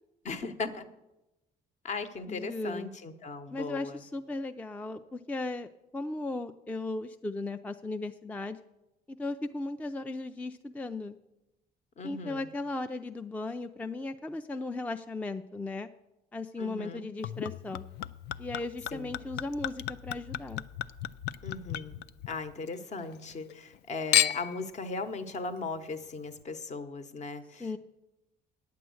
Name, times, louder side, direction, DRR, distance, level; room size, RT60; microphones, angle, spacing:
voice 1, 0.2-0.9 1.8-4.0 12.0-12.5 16.6-17.1 18.9-19.1 21.4-22.0 22.3-27.8, left 3 dB, 45° left, 10 dB, 1.0 m, -38 dB
voice 2, 2.3-2.9 3.5-8.6 9.1-11.2 12.0-15.9 16.3-17.8 18.4-20.6 27.6-27.8, left 2 dB, 10° left, 8 dB, 0.3 m, -36 dB
Chink clink / Liquid, 17.2-22.7 23.1-23.8 24.1-24.6 25.4-25.5, left 11 dB, 80° left, 0.4 m, -33 dB
9.5 x 7.6 x 7.7 m, 0.95 s
cardioid pair, 110°, 17 cm